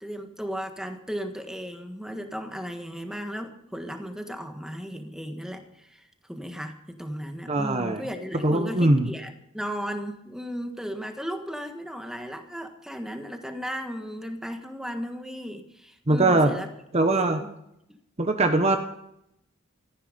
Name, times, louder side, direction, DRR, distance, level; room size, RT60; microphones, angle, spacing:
voice 1, 0.0-16.7 17.1-17.5 17.9-18.0, equal, 5° right, 6 dB, 1.6 m, -35 dB
voice 2, 7.5-8.0 8.4-9.1 16.1-16.5 16.9-17.4 18.2-18.8, right 2 dB, 30° right, 6 dB, 1.1 m, -21 dB
17.0 x 14.5 x 5.2 m, 0.79 s
head